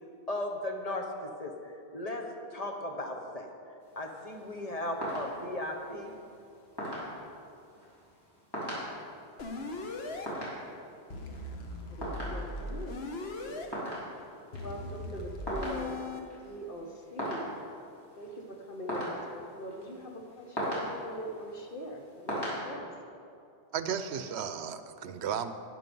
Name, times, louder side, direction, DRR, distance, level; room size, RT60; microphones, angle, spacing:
voice 1, 0.3-1.1 1.4-2.2 2.5-3.5 4.0-6.2, left 1 dB, 35° left, 2 dB, 1.2 m, -36 dB
sound 1, 3.8-22.6, equal, 20° left, 3.4 m, -41 dB
sound 2, 9.4-10.3 11.1-13.7 14.5-16.2, left 2 dB, 70° left, 1.3 m, -39 dB
voice 2, 11.9-12.9 13.5-13.8 14.5-15.9 16.4-17.5 18.2-22.9, equal, 55° left, 2 dB, 1.4 m, -42 dB
voice 3, 23.7-25.5, right 7 dB, 80° right, 11 dB, 0.9 m, -34 dB
11.5 x 9.8 x 5.4 m, 2.5 s
omnidirectional pair, 1.1 m